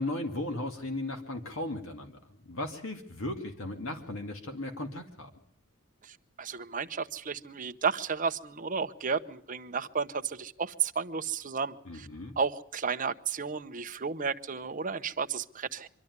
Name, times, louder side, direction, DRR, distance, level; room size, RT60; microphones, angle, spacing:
voice 1, 0.0-5.3 11.9-12.3, left 1 dB, 65° left, 5 dB, 2.3 m, -36 dB
voice 2, 6.0-12.1 12.4-15.9, right 5 dB, 40° right, 9 dB, 0.9 m, -33 dB
24.5 x 12.0 x 9.5 m, 0.64 s
head